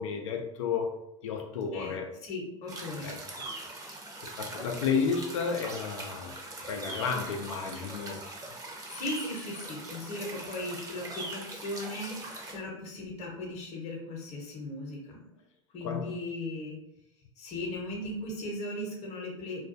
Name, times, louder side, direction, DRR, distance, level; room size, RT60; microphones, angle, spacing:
voice 1, 0.0-2.1 3.0-3.4 4.4-6.4 6.7-8.3 15.8-16.1, left 5 dB, 80° left, 0.4 m, -32 dB
voice 2, 2.2-3.2 8.9-15.3 15.7-16.8 17.4-19.6, left 2 dB, 45° left, 0.8 m, -37 dB
sound 1, 2.7-12.6, right 2 dB, 20° right, 0.7 m, -42 dB
2.3 x 2.3 x 2.5 m
hypercardioid pair, 85°, 16 cm